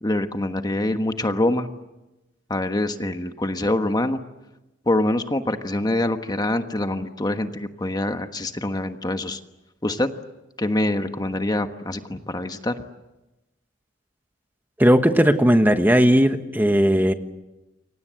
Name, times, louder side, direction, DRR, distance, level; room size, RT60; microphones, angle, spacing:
voice 1, 0.0-1.7 2.5-4.2 4.9-9.4 9.8-10.1 10.6-12.7, left 1 dB, 20° left, 7 dB, 1.3 m, -25 dB
voice 2, 14.8-17.1, equal, 10° right, 8 dB, 1.3 m, -17 dB
29.0 x 24.5 x 7.6 m, 1.0 s
head